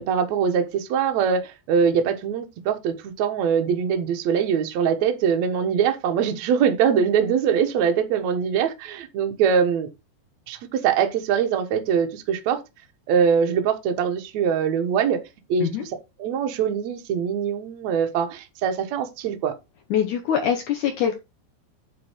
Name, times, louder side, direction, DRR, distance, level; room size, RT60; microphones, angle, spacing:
voice 1, 0.0-9.9 10.5-12.6 13.1-15.2 15.5-15.9 16.2-19.5, right 7 dB, 70° right, 1.7 m, -23 dB
voice 2, 19.9-21.2, left 8 dB, 80° left, 1.7 m, -23 dB
9.5 x 4.4 x 4.9 m
omnidirectional pair, 5.0 m